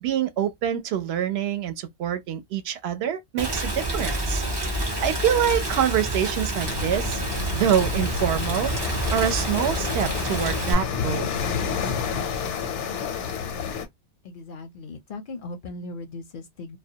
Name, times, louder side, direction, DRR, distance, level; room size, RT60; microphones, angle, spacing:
voice 1, 0.0-4.4 5.0-7.2 7.5-8.7 9.1-11.3, right 9 dB, 70° right, 0.8 m, -25 dB
Rain, 3.4-10.7, right 1 dB, 35° right, 0.4 m, -28 dB
sound 1, 6.6-13.9, left 6 dB, 85° left, 0.9 m, -29 dB
voice 2, 14.2-16.8, left 2 dB, 60° left, 0.6 m, -38 dB
2.2 x 2.1 x 2.7 m
omnidirectional pair, 1.2 m